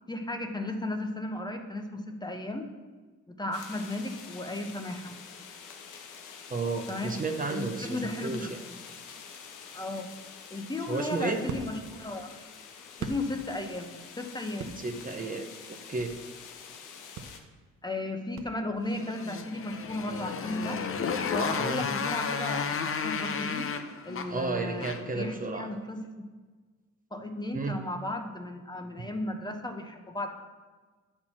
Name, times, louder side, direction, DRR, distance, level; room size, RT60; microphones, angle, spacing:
voice 1, 0.1-2.7 3.3-5.2 6.9-7.1 7.5-8.5 9.7-10.1 10.5-12.3 13.0-14.8 17.8-20.8 21.3-23.7 24.0-26.2 27.1-30.3, left 1 dB, 15° left, 4 dB, 0.9 m, -35 dB
sound 1, 3.5-17.4, left 6 dB, 85° left, 1.0 m, -47 dB
voice 2, 6.5-8.6 10.9-11.4 14.8-16.1 21.6-21.8 24.3-25.7 27.5-27.7, right 3 dB, 30° right, 5 dB, 0.8 m, -33 dB
sound 2, 10.4-13.8 14.1-16.3 16.7-16.8 17.1-19.0, right 6 dB, 65° right, 0.9 m, -42 dB
Motorcycle, 18.9-25.2, left 6 dB, 45° left, 0.7 m, -32 dB
8.4 x 4.5 x 5.9 m, 1.4 s
cardioid pair, 90°, 30 cm